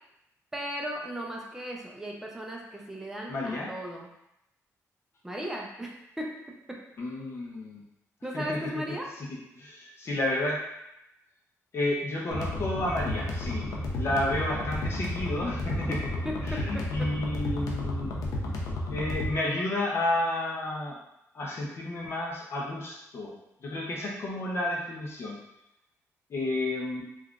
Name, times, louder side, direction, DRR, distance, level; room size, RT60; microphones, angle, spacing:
voice 1, 0.5-4.1 5.2-6.3 6.7-6.8 8.2-9.1 15.9-16.0 16.2-17.1, equal, 5° right, -1 dB, 0.5 m, -36 dB
voice 2, 3.3-3.7 7.0-7.8 8.3-8.8 9.2-10.6 11.7-13.7 13.9-16.0 16.4-18.1 18.9-21.0 21.3-25.4 26.3-27.0, left 1 dB, 45° left, -2 dB, 0.5 m, -31 dB
sound 1, 12.3-19.3, left 1 dB, 85° left, 0.5 m, -32 dB
3.5 x 2.3 x 2.3 m, 0.84 s
cardioid pair, 140°, 6 cm